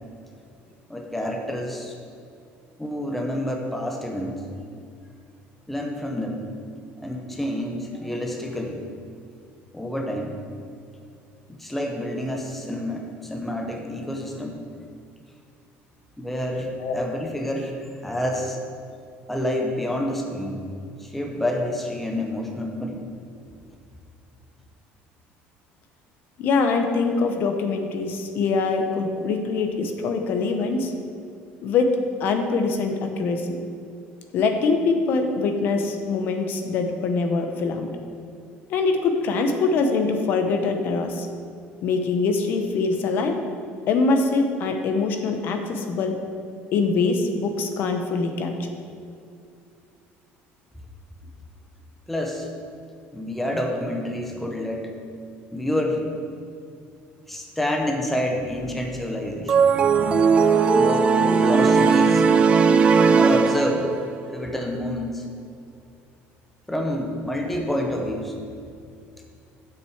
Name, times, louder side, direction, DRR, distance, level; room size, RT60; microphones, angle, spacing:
voice 1, 0.9-1.9 2.8-4.4 5.7-6.5 7.0-8.8 9.7-10.4 11.5-14.6 16.2-18.6 19.3-20.6 21.0-23.0 52.1-52.5 53.1-54.9 55.5-56.2 57.3-60.2 60.8-62.2 63.2-63.9 64.3-65.3 66.7-68.4, left 1 dB, 5° left, 1 dB, 0.8 m, -28 dB
voice 2, 26.4-30.9 31.6-31.9 32.2-33.6 34.3-37.9 38.7-41.3 41.8-43.3 43.9-46.1 46.7-48.5, left 4 dB, 50° left, 5 dB, 0.9 m, -23 dB
sound 1, 59.5-64.1, right 5 dB, 25° right, 0.4 m, -18 dB
7.8 x 6.1 x 7.9 m, 2.5 s
cardioid pair, 175°, 4 cm